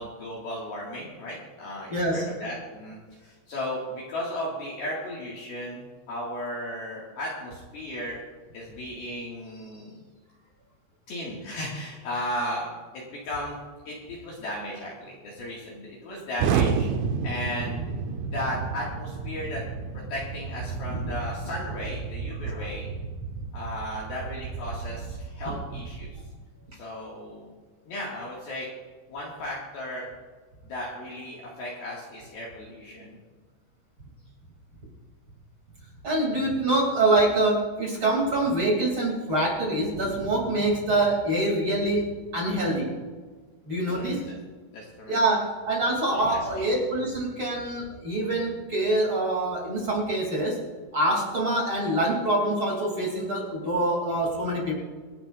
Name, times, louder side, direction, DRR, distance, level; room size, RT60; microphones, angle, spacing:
voice 1, 0.0-8.2 8.5-10.0 11.1-13.6 13.9-16.9 17.2-17.8 18.3-19.6 20.1-22.9 23.5-26.2 26.8-27.5 27.9-28.7 29.1-30.1 30.6-33.2 43.9-44.4 44.7-45.2 46.3-46.4, left 1 dB, 55° left, -5 dB, 3.4 m, -35 dB
voice 2, 1.9-2.3 4.9-5.0 21.0-21.1 22.4-22.7 36.0-42.9 43.6-44.2 45.1-50.6 50.9-54.7, right 1 dB, 30° right, -2 dB, 2.8 m, -25 dB
Explosion, 16.4-26.3, right 6 dB, 80° right, 3.0 m, -31 dB
27.5 x 10.5 x 2.5 m, 1.4 s
omnidirectional pair, 5.8 m